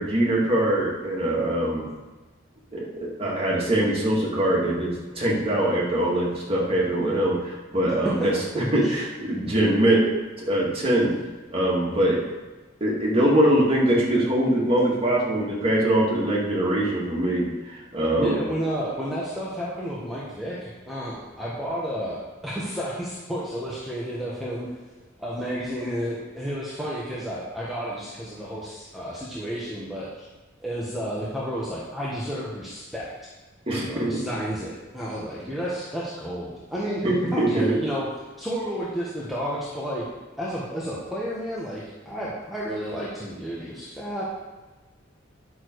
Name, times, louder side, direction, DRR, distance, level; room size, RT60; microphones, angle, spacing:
voice 1, 0.0-1.9 2.7-10.1 10.4-11.1 11.5-12.2 12.8-18.4 33.7-34.2 37.0-37.8, right 1 dB, 30° right, -4 dB, 2.3 m, -23 dB
voice 2, 8.5-9.0 18.2-24.7 25.2-30.3 30.6-33.1 33.7-38.1 38.4-40.1 40.4-44.2, equal, ahead, -7 dB, 1.3 m, -31 dB
10.0 x 6.5 x 4.7 m, 1.2 s
head